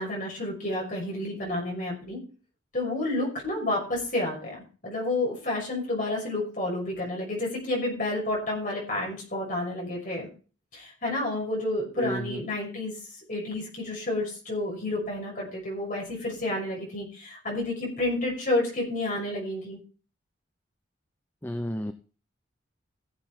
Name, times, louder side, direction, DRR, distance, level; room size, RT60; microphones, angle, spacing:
voice 1, 0.0-2.2 2.7-4.6 4.8-10.3 10.7-12.9 13.3-19.8, left 1 dB, 40° left, -2 dB, 6.2 m, -30 dB
voice 2, 21.4-21.9, left 1 dB, 10° left, 8 dB, 0.7 m, -31 dB
15.5 x 7.7 x 4.4 m, 0.37 s
head